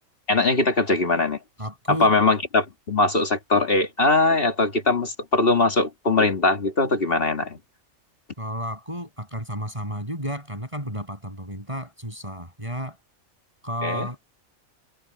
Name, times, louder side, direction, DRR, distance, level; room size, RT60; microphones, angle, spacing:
voice 1, 0.3-1.4 1.9-7.6 13.8-14.1, left 3 dB, 45° left, 2.2 m, -21 dB
voice 2, 1.6-2.1 8.4-13.0 13.6-14.2, equal, 20° right, 7.6 m, -32 dB
omnidirectional pair, 1.4 m